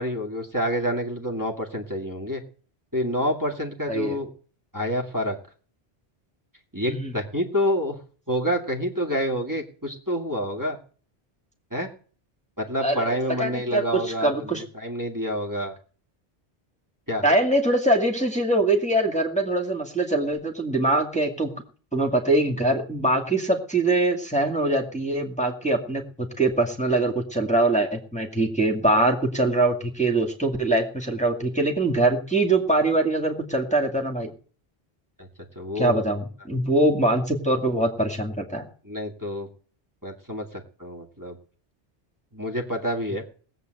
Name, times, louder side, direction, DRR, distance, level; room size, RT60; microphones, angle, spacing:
voice 1, 0.0-2.4 2.9-4.3 4.7-5.4 6.7-8.0 8.3-10.8 11.7-12.0 12.6-15.7 17.1-17.2 35.2-35.3 35.6-36.0 38.8-39.5 40.0-41.4 42.3-43.2, equal, 20° right, -1 dB, 2.3 m, -28 dB
voice 2, 13.4-14.6 17.2-21.5 21.9-26.0 26.4-34.3 35.8-38.6, right 2 dB, 5° left, 1 dB, 2.2 m, -23 dB
19.0 x 7.8 x 7.9 m, 0.42 s
omnidirectional pair, 1.1 m